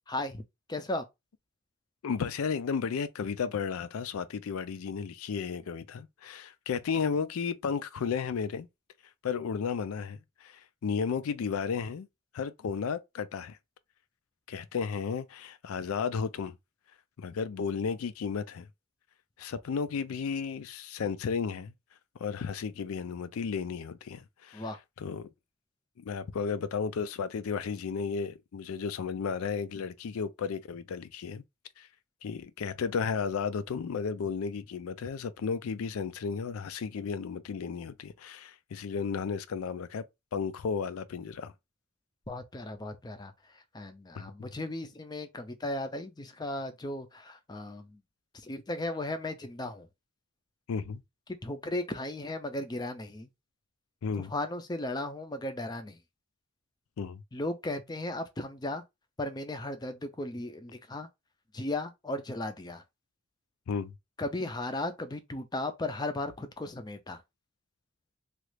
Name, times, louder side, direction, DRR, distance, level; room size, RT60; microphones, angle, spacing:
voice 1, 0.1-1.0 24.5-24.8 42.3-48.0 48.3-49.9 51.3-53.3 54.2-56.0 57.3-58.8 59.2-61.1 61.5-62.8 64.2-67.2, left 2 dB, 20° left, 0.4 m, -36 dB
voice 2, 2.0-8.7 9.2-12.1 12.3-13.6 14.5-16.5 17.2-18.7 19.4-21.7 22.2-24.6 25.0-25.3 26.0-31.4 31.8-31.9 32.2-40.1 40.3-41.5 44.2-44.5 50.7-51.0 54.0-54.3 57.0-57.2 63.7-63.9, left 6 dB, 85° left, 0.4 m, -33 dB
3.0 x 2.4 x 3.2 m
head